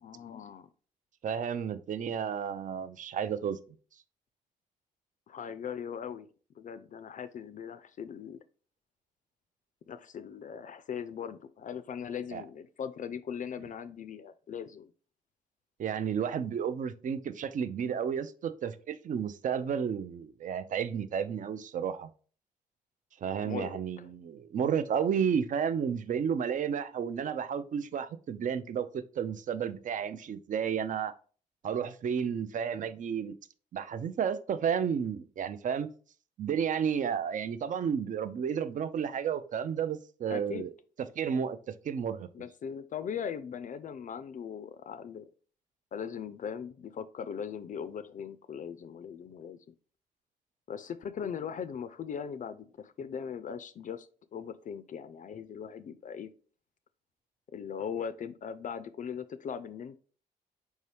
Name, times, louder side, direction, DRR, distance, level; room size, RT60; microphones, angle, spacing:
voice 1, 0.0-0.7 5.3-6.3 6.6-8.4 9.9-14.9 23.4-24.1 40.3-40.7 42.3-45.2 45.9-49.6 50.7-56.3 57.5-60.0, left 7 dB, 50° left, 0.4 m, -39 dB
voice 2, 1.2-3.6 12.3-12.4 15.8-22.1 23.2-31.1 31.6-33.4 33.7-35.9 36.4-40.7 41.2-41.6 41.8-42.3, right 7 dB, 50° right, 0.4 m, -32 dB
4.6 x 2.7 x 3.2 m
hypercardioid pair, 40°, 18 cm